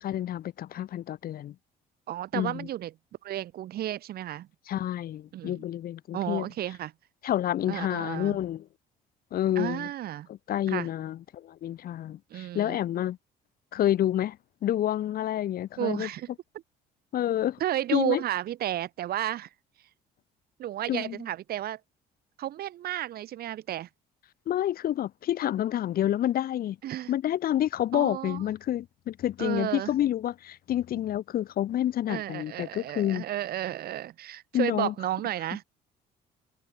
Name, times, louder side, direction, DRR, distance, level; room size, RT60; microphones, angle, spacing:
voice 1, 0.0-1.5 2.3-2.7 4.7-6.5 7.2-8.6 9.3-9.9 10.3-13.2 13.7-14.4 14.6-16.1 17.1-17.6 17.9-18.2 20.9-21.2 24.5-26.8 27.1-33.2 34.5-34.9, left 12 dB, 60° left, 2.6 m, -28 dB
voice 2, 2.1-2.9 3.2-4.5 5.3-5.6 6.1-6.9 7.7-8.4 9.6-10.3 10.7-10.9 12.3-12.8 15.8-16.3 17.6-19.5 20.6-21.8 22.4-23.9 26.8-27.1 27.9-28.4 29.4-29.9 32.1-35.6, right 13 dB, 65° right, 2.8 m, -32 dB
cardioid pair, 110°, 17 cm